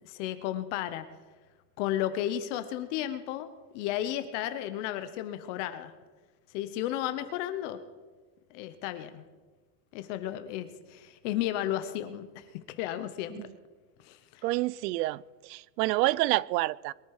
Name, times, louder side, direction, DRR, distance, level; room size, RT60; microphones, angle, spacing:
voice 1, 0.0-1.1 1.8-3.5 3.7-5.9 6.5-7.8 8.5-9.2 9.9-12.4 12.8-13.4 14.0-14.4, left 12 dB, 50° left, 1.0 m, -33 dB
voice 2, 14.4-16.9, right 18 dB, 80° right, 0.6 m, -28 dB
22.5 x 10.5 x 4.8 m
supercardioid pair, 170°, 47 cm